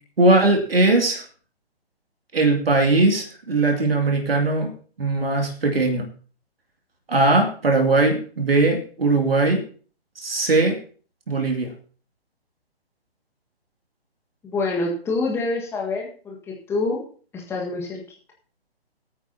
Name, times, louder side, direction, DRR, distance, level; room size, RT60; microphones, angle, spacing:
voice 1, 0.2-1.2 2.3-4.7 5.0-6.0 7.1-9.6 10.2-10.8 11.3-11.7, right 2 dB, 65° right, 2 dB, 2.6 m, -19 dB
voice 2, 14.4-17.0 17.3-18.0, left 3 dB, 10° left, -1 dB, 1.6 m, -26 dB
20.5 x 8.9 x 2.8 m, 0.42 s
figure-of-eight pair, 140°, 32 cm